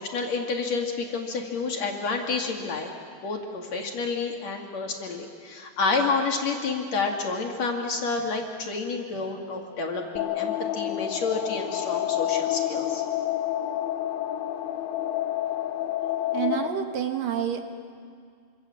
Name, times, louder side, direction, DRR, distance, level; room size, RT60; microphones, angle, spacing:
voice 1, 0.0-2.9 3.2-13.0, left 4 dB, 50° left, 1 dB, 3.0 m, -29 dB
sound 1, 10.2-16.7, left 12 dB, 75° left, 3.0 m, -28 dB
voice 2, 16.3-17.6, right 9 dB, 70° right, 5 dB, 3.1 m, -28 dB
26.0 x 26.0 x 7.6 m, 2.2 s
omnidirectional pair, 4.3 m